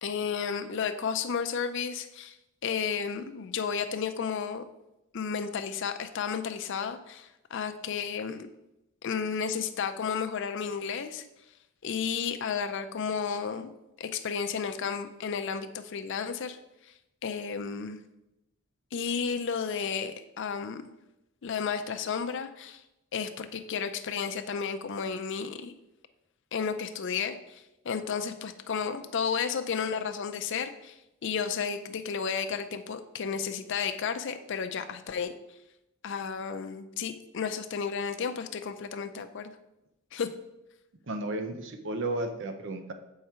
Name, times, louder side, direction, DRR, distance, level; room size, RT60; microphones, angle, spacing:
voice 1, 0.0-2.4 2.6-4.6 5.1-8.5 9.0-11.2 11.8-13.7 14.0-16.6 17.2-18.0 18.9-20.8 21.4-22.8 23.1-25.7 26.5-30.9 31.2-35.3 36.0-39.5 40.1-40.3, left 6 dB, 60° left, 8 dB, 0.5 m, -32 dB
voice 2, 41.1-42.9, right 2 dB, 60° right, 7 dB, 0.7 m, -33 dB
6.7 x 4.7 x 4.3 m, 0.93 s
head